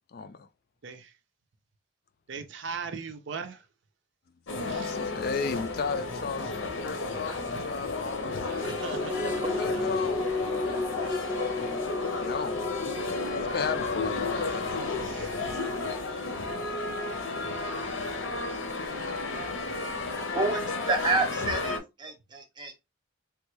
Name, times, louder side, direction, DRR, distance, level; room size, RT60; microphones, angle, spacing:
voice 1, 0.1-0.5 4.5-9.0 9.5-10.6 11.0-11.4 12.2-13.0 13.4-14.7 15.3-15.7 18.9-19.6, left 5 dB, 50° left, 0.3 m, -36 dB
voice 2, 2.3-3.6 4.7-4.9 8.6-9.7 15.1-15.3, right 5 dB, 65° right, 0.5 m, -38 dB
sound 1, 4.5-21.8, left 3 dB, 75° left, 0.7 m, -32 dB
sound 2, 8.1-18.9 19.3-19.4, left 2 dB, 15° left, 0.7 m, -36 dB
voice 3, 20.9-22.9, right 2 dB, 20° right, 0.7 m, -29 dB
3.5 x 2.3 x 3.0 m
head